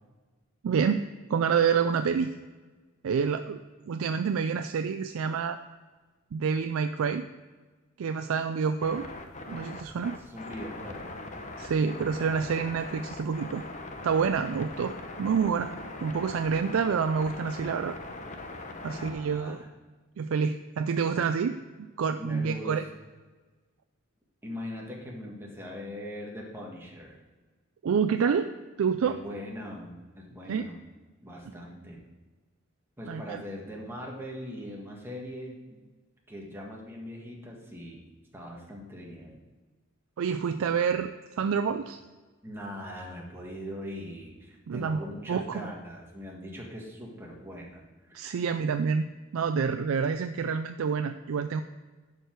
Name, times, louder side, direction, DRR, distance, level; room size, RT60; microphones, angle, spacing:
voice 1, 0.6-1.0 1.3-2.3 3.0-3.6 3.9-5.6 6.3-7.3 8.0-9.1 9.5-10.2 11.6-13.6 14.0-15.7 16.0-18.0 18.8-19.6 20.2-22.8 27.8-28.5 28.8-29.2 30.5-30.7 33.1-33.4 40.2-41.1 41.4-42.0 44.7-45.0 45.3-45.6 48.1-49.1 49.3-51.6, right 6 dB, 75° right, 9 dB, 0.4 m, -28 dB
sound 1, 8.8-19.1, left 2 dB, 35° left, 0.9 m, -41 dB
voice 2, 10.1-11.2 18.9-19.7 22.2-22.7 24.4-27.1 29.0-30.8 31.2-32.0 33.0-35.8 36.3-38.0 38.3-39.4 42.4-48.2, equal, 10° right, -2 dB, 1.6 m, -41 dB
11.0 x 4.9 x 4.6 m, 1.3 s
head